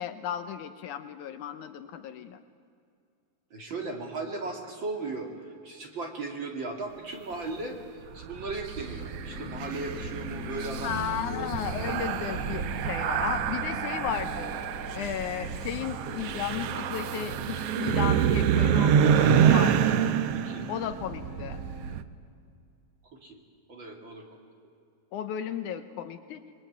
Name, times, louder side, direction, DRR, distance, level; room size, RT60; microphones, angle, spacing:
voice 1, 0.0-2.4 10.8-14.5 14.9-20.1 20.7-21.6 25.1-26.4, left 9 dB, 75° left, 10 dB, 2.1 m, -34 dB
voice 2, 3.5-11.0 11.3-11.6 20.3-20.7 23.1-23.4 23.7-24.4, right 3 dB, 40° right, 2 dB, 2.5 m, -37 dB
sound 1, 8.2-22.0, right 9 dB, 80° right, 1.3 m, -27 dB
sound 2, 8.9-21.9, left 2 dB, 50° left, 0.9 m, -42 dB
25.0 x 21.5 x 9.4 m, 2.4 s
omnidirectional pair, 3.9 m